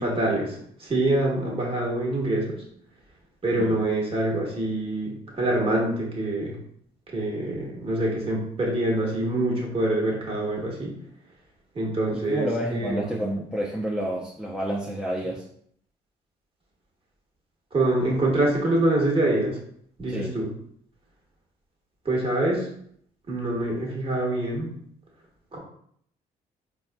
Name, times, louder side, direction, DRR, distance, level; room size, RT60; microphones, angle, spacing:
voice 1, 0.0-2.6 3.4-6.6 7.1-10.9 11.7-13.1 17.7-19.6 20.0-20.5 22.0-22.7 23.3-24.7 25.5-25.6, right 1 dB, 30° right, -3 dB, 1.3 m, -25 dB
voice 2, 12.1-15.4 20.1-20.3, right 1 dB, 5° right, -4 dB, 0.5 m, -29 dB
4.1 x 2.3 x 2.2 m, 0.66 s
hypercardioid pair, 55°, 17 cm